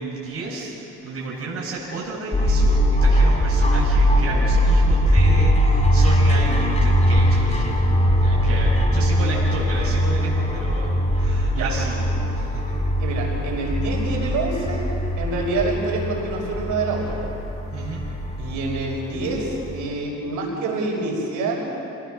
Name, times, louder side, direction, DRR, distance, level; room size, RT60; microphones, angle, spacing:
voice 1, 0.0-12.6 17.7-18.1, right 3 dB, 50° right, -4 dB, 5.5 m, -32 dB
sound 1, 2.3-19.8, equal, 20° left, 3.4 m, -20 dB
voice 2, 13.0-14.9 15.2-17.2 18.4-21.7, right 2 dB, 80° right, -2 dB, 5.8 m, -26 dB
27.0 x 18.0 x 6.5 m, 2.9 s
cardioid pair, 90°, 30 cm